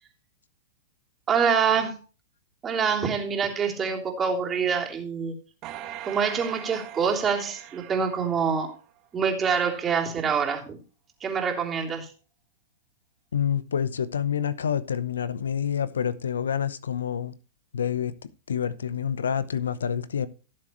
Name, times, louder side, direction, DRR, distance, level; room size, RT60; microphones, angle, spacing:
voice 1, 1.3-1.9 2.6-5.4 6.0-8.7 9.1-10.8 11.2-12.1, right 6 dB, 20° right, 3.3 m, -25 dB
sound 1, 5.6-9.1 9.6-9.7, right 12 dB, 40° right, 2.0 m, -41 dB
voice 2, 13.3-17.4 17.7-20.3, left 8 dB, 80° left, 0.8 m, -28 dB
16.5 x 7.5 x 3.1 m
hypercardioid pair, 115°, 0 cm